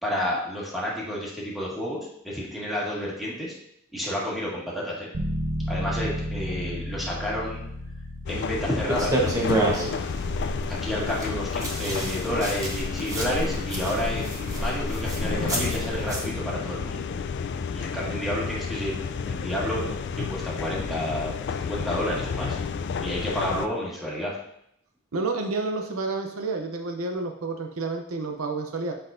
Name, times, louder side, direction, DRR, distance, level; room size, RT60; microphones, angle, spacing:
voice 1, 0.0-3.5 3.9-5.1 5.7-7.6 8.3-10.0 10.7-17.0 17.7-19.0 19.3-22.6 23.0-24.4, equal, ahead, -6 dB, 1.8 m, -30 dB
sound 1, 5.1-15.7, equal, 40° right, 0.9 m, -36 dB
sound 2, 8.3-23.7, left 6 dB, 55° left, 0.4 m, -31 dB
sound 3, 8.9-16.3, right 1 dB, 15° right, 1.1 m, -30 dB
voice 2, 25.1-28.9, right 3 dB, 70° right, 4 dB, 0.7 m, -30 dB
7.8 x 5.5 x 2.6 m, 0.74 s
head